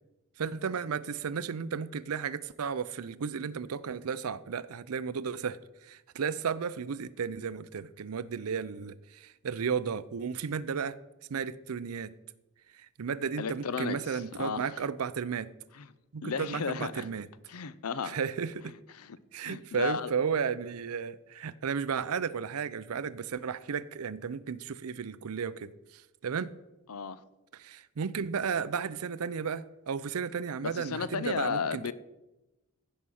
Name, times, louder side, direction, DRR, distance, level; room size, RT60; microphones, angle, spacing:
voice 1, 0.4-11.0 11.3-12.2 12.7-15.5 16.1-17.3 18.0-18.7 19.3-26.5 27.5-31.9, right 6 dB, 85° right, 0.5 m, -34 dB
voice 2, 13.4-14.7 15.8-15.9 16.2-17.1 17.5-18.2 18.9-19.2 19.4-20.1 26.9-27.2 30.6-31.9, left 5 dB, 85° left, 0.6 m, -34 dB
15.0 x 5.6 x 6.3 m
head